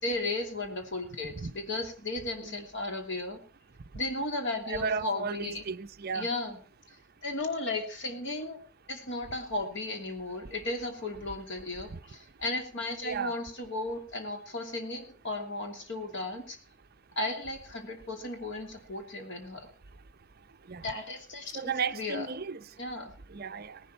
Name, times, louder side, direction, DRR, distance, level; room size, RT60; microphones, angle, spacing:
voice 1, 0.0-3.4 3.9-5.6 6.1-6.6 7.2-8.6 8.9-16.6 17.2-19.7 20.8-22.3 22.8-23.1, left 2 dB, 55° left, 3.0 m, -35 dB
voice 2, 4.7-6.3 13.0-13.4 20.7-20.8 21.5-22.6 23.3-23.8, right 5 dB, 45° right, 0.6 m, -34 dB
18.5 x 11.5 x 4.4 m
head